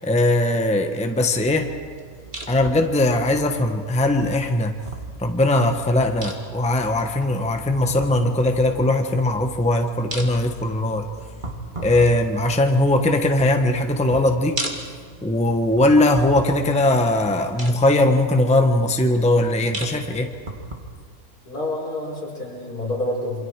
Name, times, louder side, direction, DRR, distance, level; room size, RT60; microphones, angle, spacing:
voice 1, 0.0-1.7 2.5-4.7 5.2-11.1 11.8-14.6 15.2-20.3, left 1 dB, 5° left, 4 dB, 1.2 m, -20 dB
sound 1, 1.2-20.8, right 1 dB, 30° right, 2.6 m, -38 dB
voice 2, 21.5-23.4, left 1 dB, 80° left, -3 dB, 5.7 m, -28 dB
28.0 x 25.0 x 4.8 m, 2.1 s
omnidirectional pair, 1.6 m